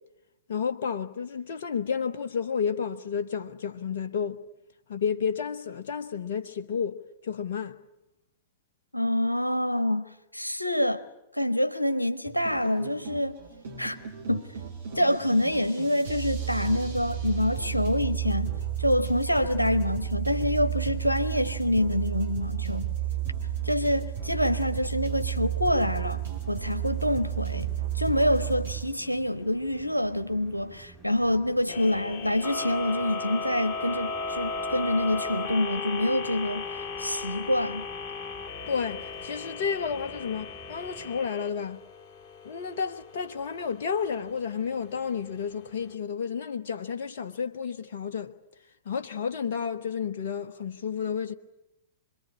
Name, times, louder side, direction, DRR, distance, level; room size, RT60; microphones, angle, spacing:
voice 1, 0.5-4.4 4.9-7.0 7.2-7.8 38.7-41.8 42.4-48.3 48.9-51.3, left 6 dB, 55° left, 1.0 m, -31 dB
voice 2, 8.9-11.0 11.3-13.4 13.8-14.0 14.3-14.5 14.9-18.5 18.8-22.9 23.6-26.2 26.5-37.9, left 1 dB, 90° left, 1.2 m, -26 dB
sound 1, 12.2-28.8, right 11 dB, 70° right, 7.4 m, -32 dB
sound 2, 25.8-41.3, right 5 dB, 5° right, 2.0 m, -52 dB
sound 3, 31.7-45.9, left 4 dB, 25° left, 3.0 m, -36 dB
26.0 x 22.5 x 9.8 m
figure-of-eight pair, 100°, 0 cm